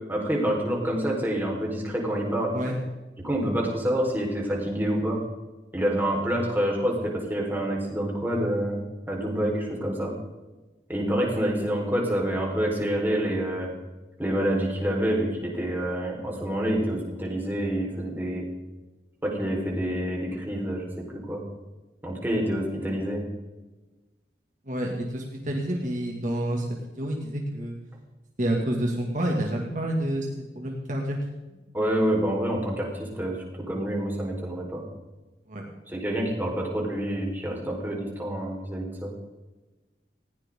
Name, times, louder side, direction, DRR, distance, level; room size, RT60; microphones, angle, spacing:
voice 1, 0.1-2.5 3.2-5.2 5.7-8.8 9.1-10.1 10.9-13.7 14.2-18.4 19.2-20.9 21.3-21.4 22.0-23.2 31.7-33.4 33.7-34.8 35.9-39.1, right 1 dB, 10° right, -2 dB, 4.4 m, -27 dB
voice 2, 24.7-26.7 27.0-27.8 28.4-30.3 30.6-31.2 35.5-35.7, right 1 dB, 45° right, -1 dB, 2.3 m, -28 dB
20.0 x 16.5 x 3.8 m, 1.1 s
head